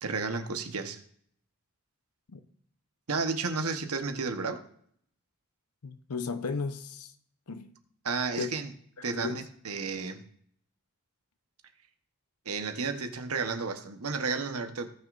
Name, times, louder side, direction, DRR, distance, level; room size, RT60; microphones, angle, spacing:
voice 1, 0.0-1.0 3.1-4.6 8.0-8.7 9.0-10.2 12.4-14.9, right 4 dB, 80° right, 1.1 m, -32 dB
voice 2, 5.8-7.1 7.5-7.7 8.4-8.5 9.0-9.4, left 4 dB, 90° left, 0.8 m, -35 dB
18.0 x 6.2 x 2.5 m
head